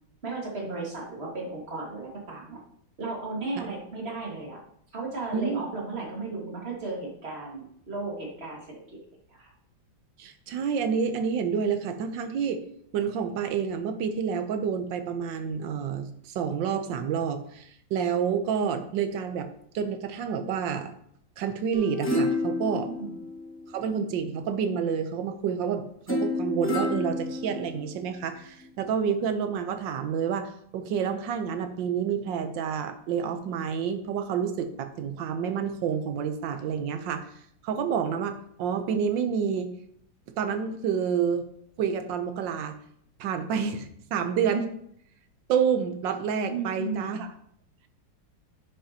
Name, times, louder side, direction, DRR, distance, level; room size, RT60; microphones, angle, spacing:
voice 1, 0.2-2.6 3.0-4.6 4.9-9.0 9.3-9.5 22.9-23.1 46.5-47.2, right 3 dB, 35° right, -2 dB, 1.9 m, -35 dB
voice 2, 5.3-5.6 10.2-12.6 12.9-19.5 19.7-20.9 21.4-22.9 23.7-37.3 37.6-39.7 40.4-41.5 41.8-42.8 43.2-44.7 45.5-47.3, right 7 dB, 80° right, 8 dB, 1.4 m, -29 dB
sound 1, 21.7-24.0 26.1-28.1 28.6-28.7, left 2 dB, 15° left, 0.4 m, -30 dB
10.0 x 5.8 x 2.8 m, 0.68 s
omnidirectional pair, 2.0 m